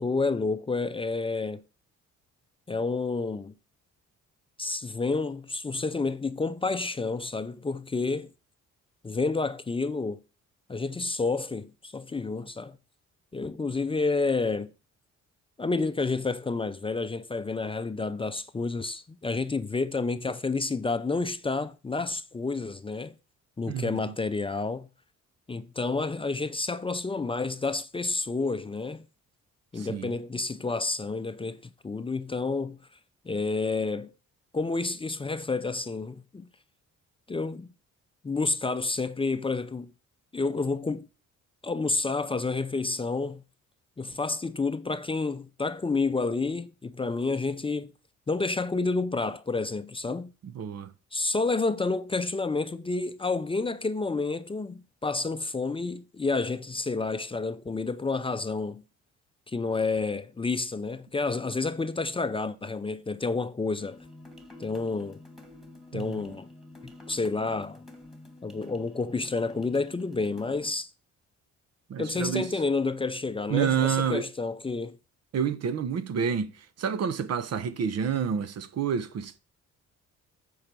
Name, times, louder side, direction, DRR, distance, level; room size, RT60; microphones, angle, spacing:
voice 1, 0.0-1.6 2.7-3.5 4.6-8.3 9.0-10.2 10.7-12.8 13.3-14.7 15.6-23.1 23.6-24.9 25.5-29.0 29.7-32.8 33.3-34.1 34.5-36.5 37.3-37.7 38.2-39.9 40.3-41.1 41.6-43.4 44.0-47.9 48.3-50.3 51.1-58.8 59.5-64.0 64.6-65.2 65.9-66.5 67.1-67.8 68.4-70.9 72.0-75.0, left 3 dB, 20° left, 0.5 m, -29 dB
voice 2, 23.7-24.1 29.8-30.1 50.4-50.9 65.9-66.4 71.9-72.5 73.5-74.2 75.3-79.4, right 7 dB, 55° right, 0.8 m, -29 dB
sound 1, 63.8-70.7, left 2 dB, ahead, 1.8 m, -49 dB
7.2 x 4.8 x 6.7 m
cardioid pair, 90°, 30 cm